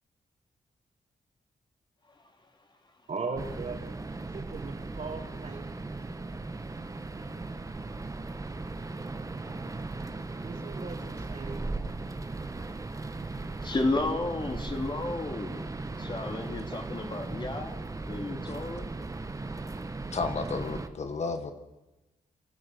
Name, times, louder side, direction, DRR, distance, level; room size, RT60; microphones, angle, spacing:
voice 1, 3.1-3.8 4.3-5.7 6.0-6.1 10.4-11.6, right 4 dB, 50° right, 3 dB, 4.4 m, -38 dB
sound 1, 3.4-20.9, right 3 dB, 25° right, 1.3 m, -37 dB
voice 2, 13.6-15.6 15.9-17.8 18.1-18.9, left 2 dB, 30° left, 4 dB, 3.0 m, -32 dB
voice 3, 20.1-21.5, left 4 dB, 50° left, 8 dB, 1.7 m, -32 dB
25.0 x 12.5 x 8.4 m, 1.1 s
cardioid pair, 85°, 14 cm